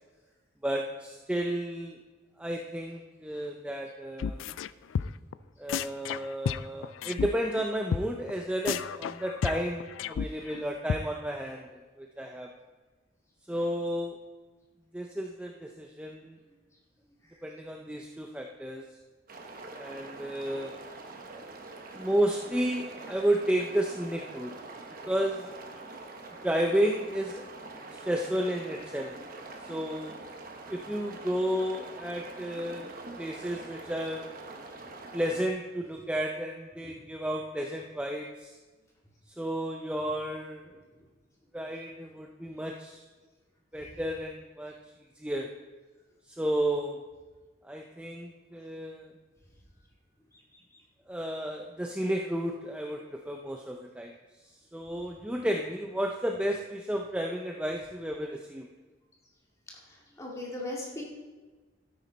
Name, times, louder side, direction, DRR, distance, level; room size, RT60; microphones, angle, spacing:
voice 1, 0.6-2.0 2.4-4.4 5.6-12.5 13.5-14.2 14.9-16.4 17.4-18.8 19.8-20.7 21.9-24.5 25.1-25.5 26.4-27.4 27.9-29.2 29.7-30.1 30.7-32.9 33.2-34.3 35.1-38.5 39.4-40.7 41.5-43.0 43.7-44.7 45.2-45.5 46.3-47.0 47.6-49.1 51.1-54.1 54.7-58.7, right 1 dB, 5° right, 1 dB, 0.5 m, -32 dB
sound 1, 4.2-4.7 4.9-5.3 5.7-7.3 7.5-7.6 7.9-8.0 8.3-8.4 8.6-10.6 10.9-11.0, left 7 dB, 85° left, 0.3 m, -32 dB
sound 2, 19.3-35.5, right 3 dB, 45° right, 1.2 m, -44 dB
voice 2, 59.9-61.0, left 1 dB, 15° left, -3 dB, 2.2 m, -39 dB
12.5 x 9.6 x 4.1 m, 1.3 s
head